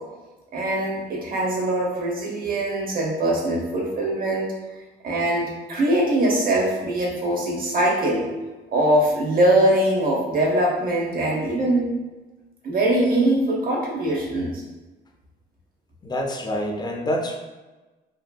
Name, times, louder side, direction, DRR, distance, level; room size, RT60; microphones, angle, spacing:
voice 1, 0.5-4.5 5.0-8.2 8.7-11.9 12.6-14.6, right 1 dB, 45° right, -2 dB, 0.7 m, -22 dB
voice 2, 16.0-17.4, equal, 20° left, 2 dB, 0.4 m, -26 dB
2.7 x 2.5 x 2.2 m, 1.2 s
cardioid pair, 90°, 20 cm